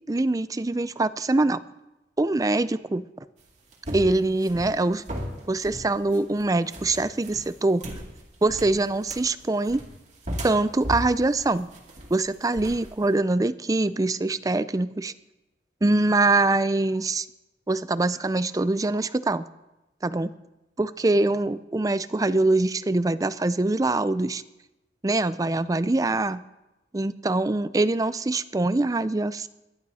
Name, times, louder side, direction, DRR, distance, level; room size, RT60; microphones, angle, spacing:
voice 1, 0.1-1.6 2.2-3.0 3.9-5.0 5.5-7.8 8.4-9.8 10.4-11.7 12.1-15.1 15.8-17.3 17.7-19.5 20.0-20.3 20.8-24.4 25.0-26.4 26.9-29.5, right 2 dB, 20° right, 15 dB, 0.4 m, -24 dB
sound 1, 3.4-13.1, equal, 40° right, 2.4 m, -37 dB
21.5 x 11.0 x 4.2 m, 0.98 s
head